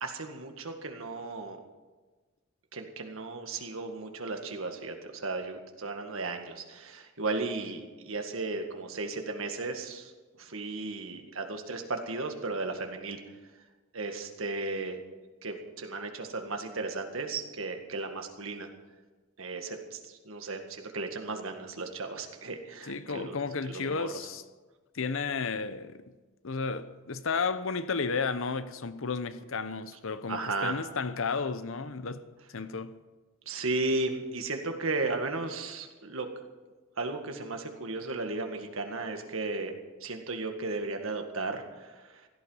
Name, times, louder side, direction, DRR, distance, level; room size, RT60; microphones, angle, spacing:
voice 1, 0.0-1.6 2.7-10.1 10.4-13.2 13.9-15.0 15.4-18.7 19.4-23.4 23.7-24.1 30.3-30.8 33.5-36.3 37.0-39.7 40.0-42.3, right 3 dB, 70° right, 1.9 m, -35 dB
voice 2, 22.9-24.4 24.9-26.0 26.4-33.0, left 4 dB, 70° left, 0.8 m, -33 dB
16.5 x 12.5 x 5.6 m
head